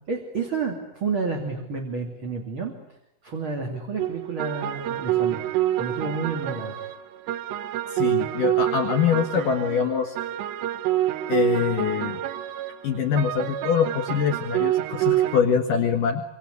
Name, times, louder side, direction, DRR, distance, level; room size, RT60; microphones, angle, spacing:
voice 1, 0.1-2.7 3.2-5.4 5.8-6.8, right 4 dB, 30° right, 3 dB, 3.1 m, -30 dB
sound 1, 4.0-15.4, right 13 dB, 70° right, 3.1 m, -27 dB
voice 2, 7.9-10.2 11.3-12.2 12.8-16.2, left 7 dB, 55° left, 7 dB, 2.7 m, -24 dB
26.5 x 26.5 x 8.4 m, 0.83 s
omnidirectional pair, 5.7 m